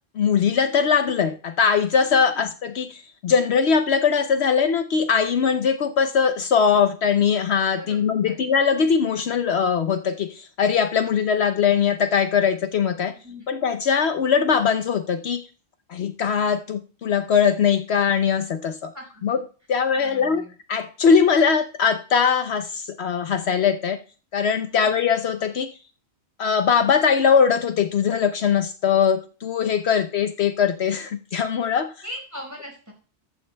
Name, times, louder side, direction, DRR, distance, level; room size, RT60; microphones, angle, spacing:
voice 1, 0.1-13.1 13.5-15.5 15.9-18.9 19.2-19.4 19.7-20.4 20.7-24.0 24.3-25.7 26.4-31.9, left 6 dB, 70° left, 8 dB, 0.9 m, -21 dB
voice 2, 7.7-8.4 13.1-13.4 18.9-19.4 20.0-20.5 32.0-32.9, equal, 15° right, 0 dB, 4.6 m, -40 dB
15.0 x 11.5 x 2.2 m, 0.37 s
omnidirectional pair, 1.2 m